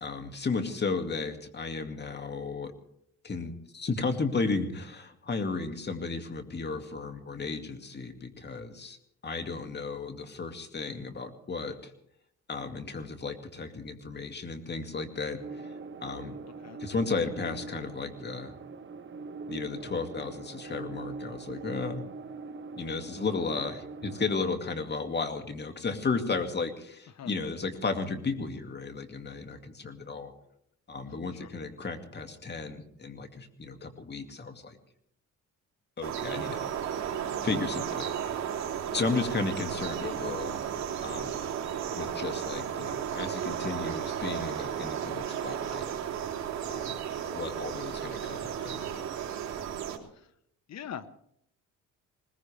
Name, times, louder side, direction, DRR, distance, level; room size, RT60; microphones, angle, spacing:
voice 1, 0.0-2.7 3.2-9.0 9.2-11.9 12.5-15.7 16.0-16.4 16.8-18.5 19.5-22.1 22.8-30.3 30.9-34.8 36.0-36.7 37.4-38.1 38.4-38.5 38.9-40.6 41.0-41.4 41.9-45.9 46.7-47.0 47.3-48.8, left 4 dB, 35° left, 6 dB, 2.3 m, -34 dB
sound 1, 15.4-24.6, right 4 dB, 40° right, 1.3 m, -42 dB
sound 2, 36.0-50.0, right 9 dB, 65° right, 3.4 m, -34 dB
voice 2, 47.8-48.1 50.1-50.3 50.7-51.1, left 8 dB, 60° left, 12 dB, 1.3 m, -43 dB
21.0 x 20.0 x 3.5 m, 0.72 s
cardioid pair, 90°, 30 cm